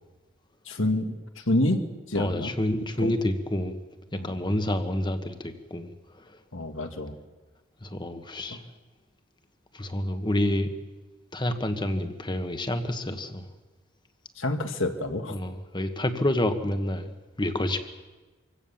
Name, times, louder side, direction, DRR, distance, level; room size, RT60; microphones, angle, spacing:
voice 1, 0.7-2.5 3.0-3.1 4.1-4.4 6.5-7.2 8.5-8.6 14.4-15.4, left 1 dB, 70° left, 6 dB, 1.9 m, -28 dB
voice 2, 2.1-3.8 4.2-5.9 6.2-6.3 7.8-8.6 9.7-10.7 11.3-13.4 15.3-17.1 17.4-17.8, left 1 dB, 20° left, 8 dB, 1.5 m, -28 dB
25.5 x 16.5 x 7.3 m, 1.2 s
head